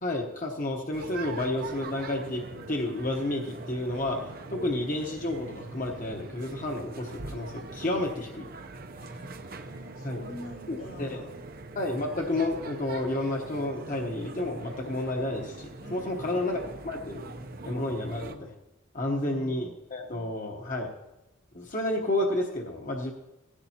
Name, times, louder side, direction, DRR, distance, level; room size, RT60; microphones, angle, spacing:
voice 1, 0.0-8.5 10.0-10.2 10.7-11.2 11.7-17.3 17.6-18.5 18.9-20.9 21.5-23.1, left 1 dB, 40° left, 1 dB, 1.0 m, -31 dB
sound 1, 0.9-18.4, right 3 dB, 45° right, 0.7 m, -42 dB
voice 2, 9.0-11.3 15.8-16.4 19.0-19.7, left 1 dB, 75° left, -1 dB, 2.4 m, -46 dB
17.0 x 14.5 x 2.9 m, 0.97 s
head